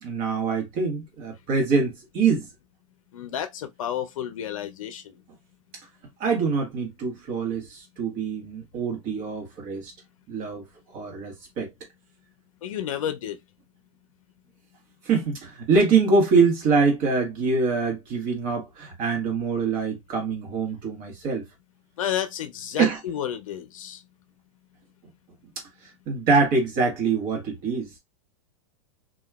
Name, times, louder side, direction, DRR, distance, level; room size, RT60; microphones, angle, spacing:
voice 1, 0.0-2.5 6.2-9.9 10.3-10.6 10.9-11.7 15.0-21.4 22.8-23.0 26.1-27.9, right 4 dB, 30° right, 1.0 m, -24 dB
voice 2, 3.1-5.1 12.6-13.4 22.0-24.0, left 10 dB, 85° left, 0.5 m, -31 dB
2.8 x 2.3 x 2.2 m
supercardioid pair, 170°, 17 cm